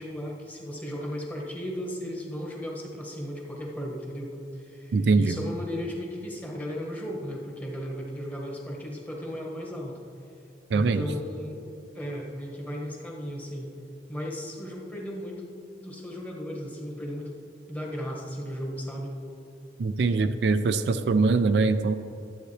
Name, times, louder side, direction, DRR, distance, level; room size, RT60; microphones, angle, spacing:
voice 1, 0.0-10.0 10.7-11.6 11.9-13.7 14.1-17.4 17.7-19.2, equal, 10° left, -1 dB, 1.2 m, -35 dB
voice 2, 4.9-5.4 10.7-11.0 19.8-21.9, right 4 dB, 70° right, 10 dB, 0.4 m, -23 dB
12.0 x 8.1 x 3.3 m, 2.6 s
head